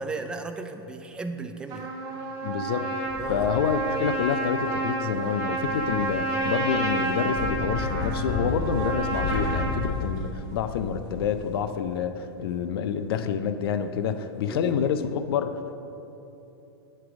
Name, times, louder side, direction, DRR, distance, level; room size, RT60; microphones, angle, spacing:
voice 1, 0.0-1.9 3.2-3.5 14.5-14.7, right 3 dB, 5° right, 7 dB, 0.3 m, -35 dB
Trumpet, 1.7-9.7, right 2 dB, 30° right, 1.5 m, -30 dB
voice 2, 2.4-2.9 3.3-15.7, left 7 dB, 65° left, 10 dB, 0.5 m, -28 dB
sound 1, 3.0-15.1, left 3 dB, 30° left, 1.0 m, -34 dB
9.6 x 3.3 x 6.0 m, 2.9 s
hypercardioid pair, 135°, 13 cm